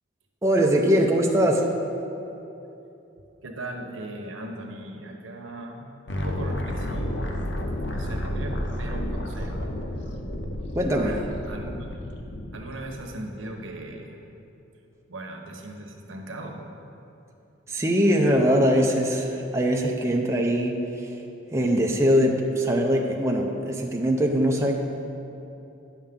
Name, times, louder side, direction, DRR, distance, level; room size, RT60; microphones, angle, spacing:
voice 1, 0.4-1.7 10.8-11.1 17.7-21.1 21.5-24.7, equal, 15° right, 0 dB, 0.5 m, -22 dB
voice 2, 3.4-9.7 10.9-12.0 12.5-14.2 15.1-16.7, right 1 dB, 85° right, 2 dB, 1.0 m, -38 dB
sound 1, 6.1-12.9, left 1 dB, 60° left, 0.7 m, -31 dB
9.5 x 7.2 x 3.7 m, 2.9 s
head